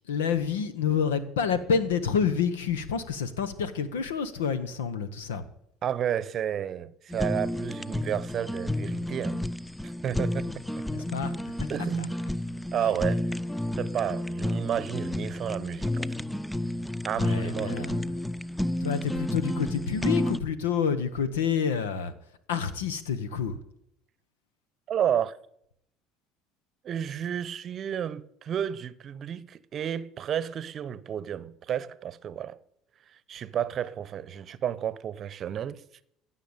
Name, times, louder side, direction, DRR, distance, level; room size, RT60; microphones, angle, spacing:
voice 1, 0.1-5.4 10.9-11.3 12.0-12.1 17.1-18.0 18.8-22.1 22.5-23.6, left 6 dB, 90° left, 1.1 m, -28 dB
voice 2, 5.8-9.4 9.8-10.6 11.7-12.2 12.7-13.3 13.8-16.2 17.0-17.9 24.9-25.3 26.8-32.6 33.3-35.8, right 9 dB, 45° right, 0.8 m, -31 dB
Fire, 7.1-20.4, left 1 dB, 5° left, 0.4 m, -31 dB
15.5 x 5.8 x 8.9 m
hypercardioid pair, 80°, 0 cm